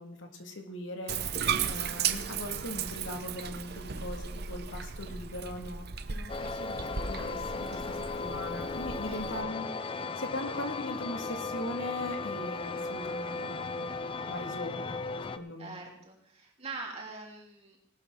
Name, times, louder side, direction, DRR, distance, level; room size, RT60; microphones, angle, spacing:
voice 1, 0.0-14.0 14.3-15.0 15.4-15.7, left 1 dB, 70° left, 5 dB, 1.9 m, -40 dB
Bathtub (filling or washing), 1.1-9.4, right 7 dB, 50° right, 0.8 m, -36 dB
sound 1, 6.3-15.4, left 3 dB, 25° left, 0.5 m, -36 dB
voice 2, 15.6-17.8, right 3 dB, 30° right, -1 dB, 3.6 m, -44 dB
19.0 x 12.0 x 3.7 m, 0.66 s
head